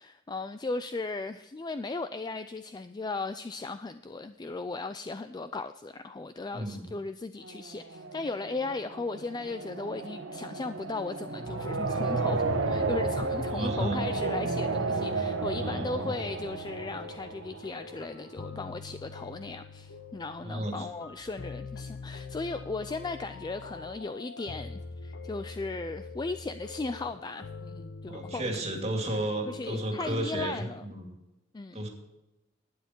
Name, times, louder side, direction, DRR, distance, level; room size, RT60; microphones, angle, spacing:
voice 1, 0.0-28.6 29.5-30.8 31.5-31.9, left 3 dB, 20° left, 10 dB, 0.3 m, -37 dB
voice 2, 6.5-6.9 13.5-14.0 15.6-16.1 20.4-20.9 28.1-31.1 31.7-31.9, right 1 dB, 30° right, 1 dB, 2.4 m, -33 dB
sound 1, 7.4-18.3, right 3 dB, 70° right, 1.3 m, -33 dB
sound 2, 11.5-30.5, left 4 dB, 60° left, 0.7 m, -44 dB
11.5 x 9.5 x 4.4 m, 0.99 s
head